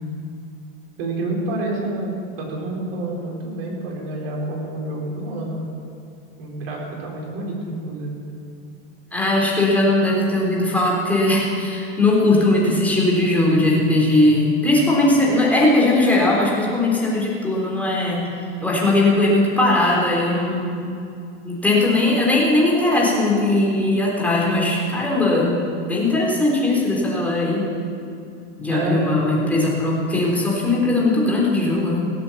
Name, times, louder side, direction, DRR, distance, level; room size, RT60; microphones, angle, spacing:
voice 1, 1.0-5.6 6.4-8.2 28.7-29.4, right 2 dB, 65° right, -2 dB, 4.4 m, -28 dB
voice 2, 9.1-20.8 21.4-27.7 28.6-32.1, left 2 dB, 5° left, -4 dB, 3.6 m, -19 dB
17.5 x 7.8 x 7.2 m, 2.5 s
supercardioid pair, 135°, 31 cm